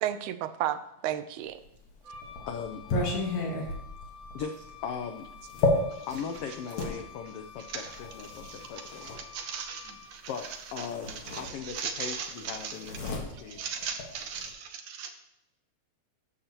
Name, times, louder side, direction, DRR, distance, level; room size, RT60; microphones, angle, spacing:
voice 1, 0.0-1.6, right 12 dB, 90° right, 11 dB, 2.0 m, -32 dB
sound 1, 1.6-7.0 7.9-9.2 10.4-10.6 10.9-12.0 12.3-14.5, left 3 dB, 70° left, 2.9 m, -33 dB
Wind instrument woodwind instrument, 2.0-10.4, left 6 dB, 30° right, 2.1 m, -49 dB
voice 2, 2.5-2.8 4.3-5.3 6.1-9.1 10.3-13.6, left 6 dB, 90° left, 6 dB, 1.3 m, -39 dB
voice 3, 7.7-8.0 8.4-10.2 10.8-10.9 11.3-13.1 13.6-15.1, right 6 dB, 70° right, 6 dB, 2.0 m, -38 dB
12.0 x 6.7 x 3.0 m, 0.83 s
omnidirectional pair, 3.3 m